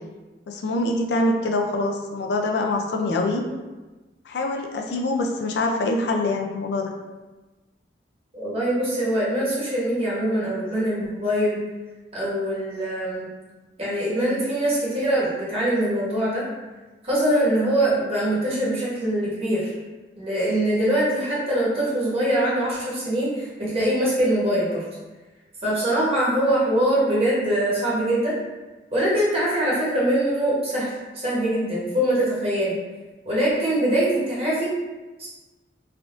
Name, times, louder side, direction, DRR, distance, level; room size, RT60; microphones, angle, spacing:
voice 1, 0.5-3.4 4.3-6.9, left 2 dB, 70° left, 3 dB, 0.3 m, -24 dB
voice 2, 8.3-11.6 12.1-13.3 13.8-16.5 17.0-19.7 20.2-24.8 25.6-28.3 28.9-32.7 33.2-34.7 35.2-35.3, right 1 dB, 35° right, -7 dB, 1.0 m, -23 dB
3.4 x 2.4 x 2.5 m, 1.2 s
head